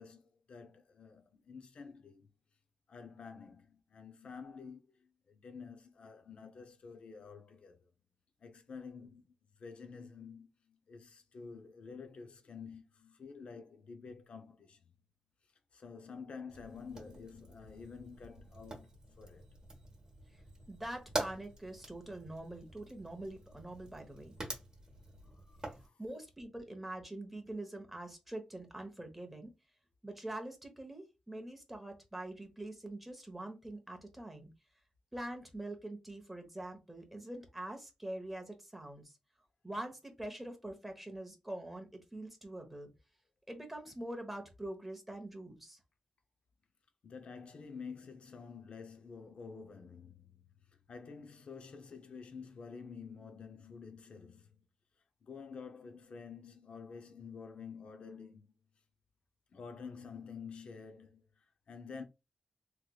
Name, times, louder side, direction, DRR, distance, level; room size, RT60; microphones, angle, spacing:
voice 1, 0.0-2.3 2.9-7.9 8.4-9.3 9.6-14.9 15.7-19.5 25.4-26.0 47.0-50.5 50.9-54.6 55.2-58.5 59.5-62.0, left 5 dB, 60° left, 0.6 m, -49 dB
Fire, 16.5-25.9, right 2 dB, 35° right, 1.1 m, -46 dB
voice 2, 20.7-24.3 26.0-29.5 30.0-34.5 35.1-39.1 39.6-42.9 43.5-45.8, right 1 dB, 5° right, 1.0 m, -44 dB
3.2 x 3.0 x 2.3 m
wide cardioid pair, 125°, 2 cm